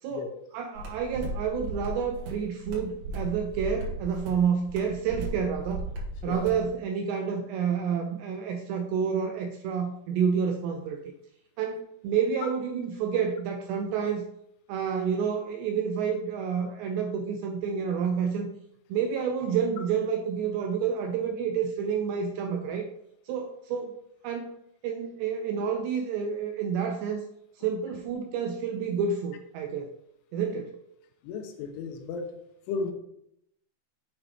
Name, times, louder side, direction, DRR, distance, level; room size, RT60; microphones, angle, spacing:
voice 1, 0.5-5.9 6.2-11.1 11.6-14.3 14.7-18.5 18.9-22.9 23.3-23.9 24.2-24.5 24.8-27.2 27.6-29.9 30.3-30.7, right 6 dB, 85° right, 4 dB, 2.5 m, -29 dB
sound 1, 0.8-6.7, right 2 dB, 60° right, 2.5 m, -36 dB
voice 2, 31.2-32.4 32.7-32.9, left 4 dB, 85° left, 6 dB, 3.2 m, -34 dB
7.9 x 5.9 x 3.3 m, 0.77 s
omnidirectional pair, 5.5 m